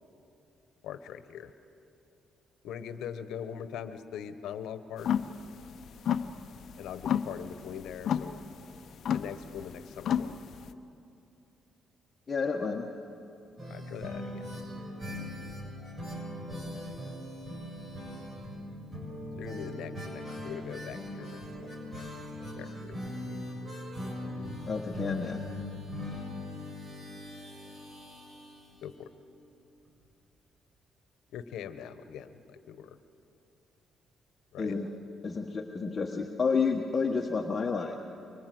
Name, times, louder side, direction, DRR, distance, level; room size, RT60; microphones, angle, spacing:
voice 1, 0.8-1.5 2.6-5.1 6.8-8.5 9.1-10.4 13.7-14.5 19.4-21.7 22.6-23.0 28.8-29.1 31.3-33.0 34.5-34.8, left 8 dB, 85° left, 11 dB, 1.2 m, -41 dB
sound 1, 5.0-10.7, left 8 dB, 65° left, 0.8 m, -32 dB
voice 2, 12.3-12.9 24.7-25.4 34.6-34.9 35.2-38.0, left 5 dB, 35° left, 1 dB, 1.5 m, -30 dB
sound 2, 13.6-29.2 29.5-29.6 29.9-30.0, left 1 dB, 30° right, 6.4 m, -40 dB
24.5 x 24.5 x 7.8 m, 2.7 s
cardioid pair, 90°, 0 cm